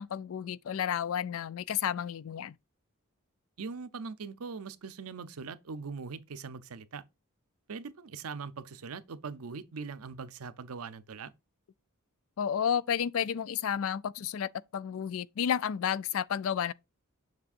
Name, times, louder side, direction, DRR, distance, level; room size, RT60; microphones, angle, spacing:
voice 1, 0.0-2.5 12.4-16.7, left 8 dB, 65° left, 0.4 m, -31 dB
voice 2, 3.6-7.0 7.7-11.3, right 5 dB, 75° right, 0.6 m, -41 dB
7.3 x 6.2 x 2.5 m
head